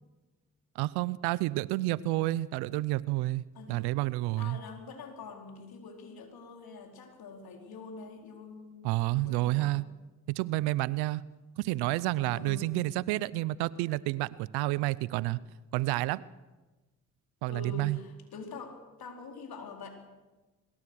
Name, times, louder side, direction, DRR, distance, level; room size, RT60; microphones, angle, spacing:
voice 1, 0.8-4.6 8.8-9.8 10.3-11.2 11.6-15.4 15.7-16.2 17.4-18.0, right 18 dB, 85° right, 21 dB, 0.6 m, -30 dB
voice 2, 3.5-3.9 4.4-9.8 12.3-12.7 17.5-19.9, left 4 dB, 70° left, 3 dB, 4.3 m, -45 dB
24.0 x 21.0 x 6.3 m, 1.2 s
hypercardioid pair, 40°, 38 cm